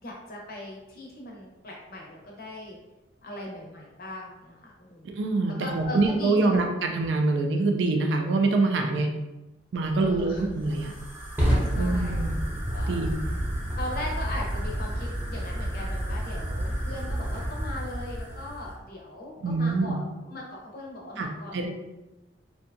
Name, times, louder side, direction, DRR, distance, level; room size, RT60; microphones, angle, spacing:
voice 1, 0.0-2.8 3.2-5.1 5.6-6.6 9.9-10.5 11.6-12.3 12.7-12.9 13.8-21.7, left 1 dB, 55° left, -2 dB, 0.6 m, -39 dB
voice 2, 5.0-9.1 9.7-10.9 11.8-12.3 12.9-13.3 19.4-20.0 21.2-21.3 21.5-21.7, right 3 dB, 70° right, 3 dB, 0.3 m, -25 dB
Fire, 9.9-18.8, equal, 10° right, 0.6 m, -30 dB
2.6 x 2.2 x 2.5 m, 1.0 s
head